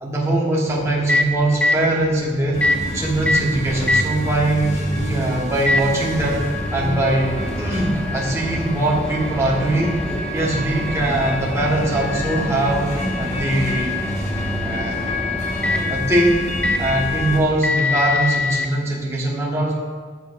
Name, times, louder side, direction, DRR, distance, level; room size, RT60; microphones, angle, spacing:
voice 1, 0.0-6.4 6.7-10.0 10.3-14.0 14.6-15.1 15.9-16.5 16.8-19.7, right 1 dB, 15° right, -4 dB, 1.2 m, -21 dB
Microwave oven, 0.7-18.7, left 2 dB, 5° left, 0.4 m, -27 dB
sound 1, 2.5-17.4, left 1 dB, 40° left, 1.4 m, -27 dB
14.0 x 6.9 x 2.5 m, 1.5 s
head